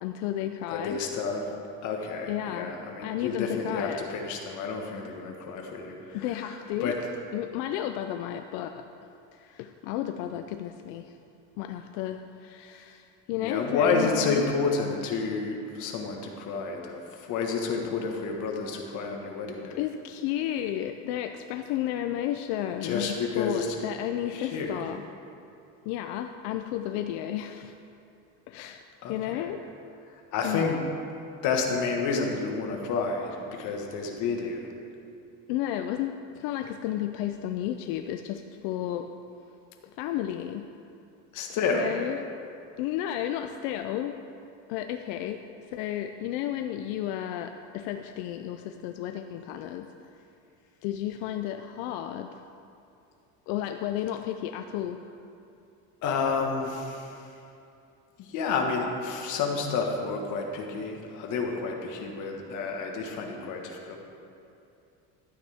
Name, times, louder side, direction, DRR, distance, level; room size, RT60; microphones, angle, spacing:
voice 1, 0.0-1.0 2.3-2.8 3.0-4.0 6.1-6.9 7.3-8.9 9.3-11.2 11.6-14.5 19.8-25.0 25.9-27.7 28.5-29.6 30.4-30.8 35.5-39.1 40.0-40.7 41.7-42.3 42.8-44.2 44.7-49.9 50.8-52.4 53.5-55.0, left 11 dB, 90° left, 7 dB, 0.5 m, -32 dB
voice 2, 0.7-1.5 1.8-7.0 13.4-19.8 22.8-23.7 24.3-24.8 29.0-29.5 30.3-30.8 31.4-34.6 41.3-41.9 56.0-57.3 58.2-64.0, left 4 dB, 55° left, 1 dB, 1.5 m, -30 dB
12.0 x 9.1 x 3.5 m, 2.6 s
cardioid pair, 145°, 36 cm